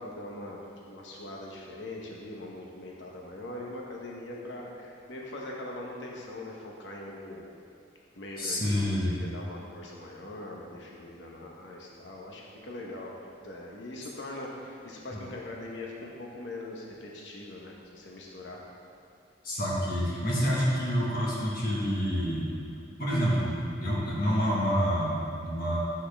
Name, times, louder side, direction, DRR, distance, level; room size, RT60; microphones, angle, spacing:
voice 1, 0.0-7.4 8.2-13.1 13.4-18.6, left 1 dB, 80° left, -2 dB, 0.9 m, -41 dB
voice 2, 8.4-9.1 19.4-22.5 23.0-25.8, equal, 55° left, -5 dB, 1.5 m, -28 dB
7.6 x 6.3 x 3.4 m, 2.4 s
head